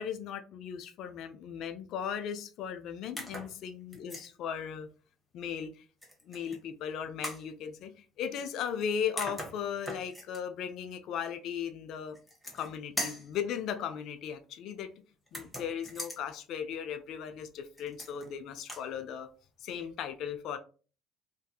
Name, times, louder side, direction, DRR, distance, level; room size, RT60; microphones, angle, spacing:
voice 1, 0.0-4.9 5.3-5.8 6.2-12.2 12.5-14.9 15.3-19.3 19.6-20.6, left 8 dB, 65° left, 8 dB, 0.3 m, -37 dB
sound 1, 3.2-3.5 3.9-4.3 6.0-6.6 7.2-7.5 8.8-8.9 9.2-10.4 12.1-12.7 13.0-13.3 15.3-16.2 17.8-18.3 18.6-18.9, equal, 5° left, 0.9 m, -40 dB
2.6 x 2.5 x 2.2 m, 0.38 s
supercardioid pair, 85°, 0 cm